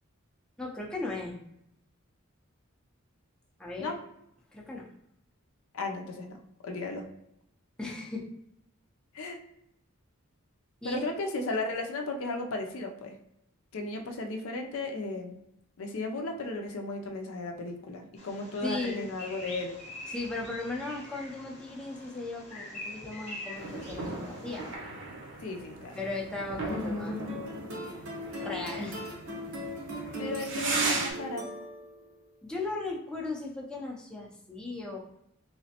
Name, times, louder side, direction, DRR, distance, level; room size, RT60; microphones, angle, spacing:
voice 1, 0.6-1.4 3.6-4.0 4.5-4.9 7.8-8.2 10.8-11.0 18.6-19.0 20.1-24.7 25.9-27.3 28.4-29.0 32.4-35.0, left 2 dB, 5° left, -3 dB, 0.5 m, -37 dB
voice 2, 5.7-6.4 6.6-7.1 9.1-9.4 10.8-13.2 13.7-15.4 15.8-19.8 25.4-26.0 30.2-31.4, left 2 dB, 70° left, 3 dB, 0.5 m, -35 dB
Bird vocalization bird call bird song, 18.2-24.7, left 1 dB, 30° left, 0.8 m, -45 dB
sound 1, 23.6-31.1, right 3 dB, 60° right, 0.8 m, -37 dB
sound 2, 26.7-32.1, equal, 85° right, 1.0 m, -38 dB
3.2 x 3.0 x 2.8 m, 0.80 s
head